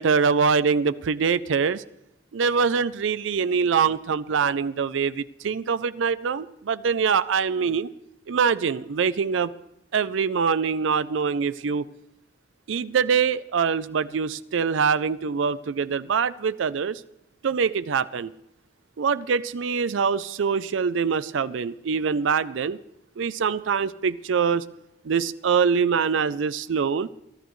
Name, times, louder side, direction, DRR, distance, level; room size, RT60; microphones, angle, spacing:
voice 1, 0.0-1.8 2.3-7.9 8.3-9.5 9.9-11.9 12.7-17.0 17.4-18.3 19.0-22.8 23.2-24.6 25.0-27.1, right 6 dB, 85° right, 15 dB, 0.4 m, -24 dB
26.0 x 11.5 x 3.1 m, 0.86 s
head